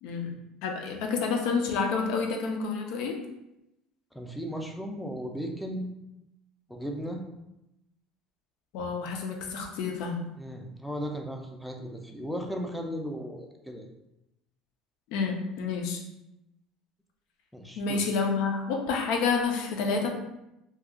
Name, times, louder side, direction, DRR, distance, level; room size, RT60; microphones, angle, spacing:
voice 1, 0.0-3.2 8.7-10.2 15.1-16.0 17.8-20.1, left 5 dB, 70° left, 2 dB, 0.6 m, -29 dB
voice 2, 4.1-5.9 6.7-7.2 10.4-13.9 17.5-18.0, equal, ahead, 2 dB, 0.4 m, -36 dB
2.8 x 2.4 x 3.6 m, 0.89 s
cardioid pair, 140°, 0 cm